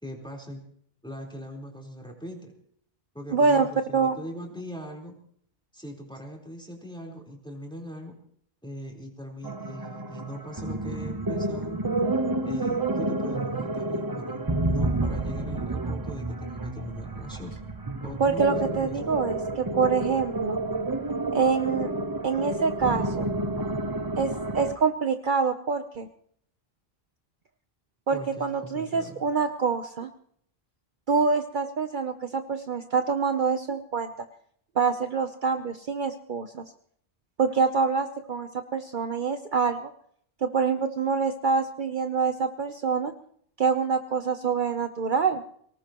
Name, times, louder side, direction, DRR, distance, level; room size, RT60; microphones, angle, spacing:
voice 1, 0.0-0.6 1.0-2.5 3.1-5.2 5.7-8.2 8.6-11.8 12.4-17.6 18.0-19.2 28.1-29.2, equal, 5° left, 0 dB, 4.2 m, -40 dB
voice 2, 3.3-4.2 18.2-20.6 21.3-21.9 22.2-23.2 24.2-26.1 28.1-30.1 31.1-34.1 34.8-36.6 37.4-39.9 40.4-43.1 43.6-45.4, right 5 dB, 55° right, 7 dB, 1.0 m, -26 dB
sound 1, 9.4-24.7, right 2 dB, 20° right, 0.9 m, -30 dB
24.0 x 19.0 x 3.0 m, 0.64 s
omnidirectional pair, 1.0 m